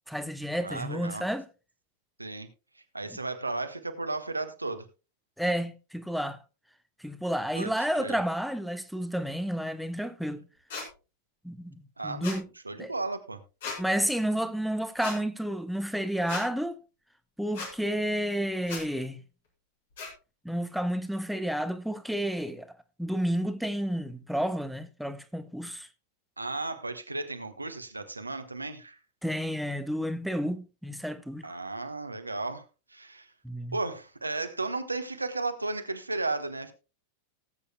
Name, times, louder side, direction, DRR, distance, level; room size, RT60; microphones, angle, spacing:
voice 1, 0.1-1.5 3.1-3.2 5.4-6.4 7.0-10.4 11.4-12.5 12.8-12.9 13.8-16.8 17.4-19.2 20.4-22.7 23.0-25.9 29.2-31.6 33.4-33.8, equal, ahead, 1.0 m, -31 dB
voice 2, 0.6-1.3 2.2-2.5 2.7-4.9 7.6-7.7 8.0-8.2 12.0-12.3 12.6-13.4 26.4-29.0 31.4-33.3 33.7-36.7, right 3 dB, 80° right, 1.2 m, -34 dB
sound 1, 10.7-10.9 12.2-12.4 13.6-13.8 15.0-15.2 16.3-16.5 17.5-17.7 18.7-18.8 20.0-20.1, left 4 dB, 60° left, 3.9 m, -36 dB
18.5 x 8.3 x 2.2 m
figure-of-eight pair, 90°, 0 cm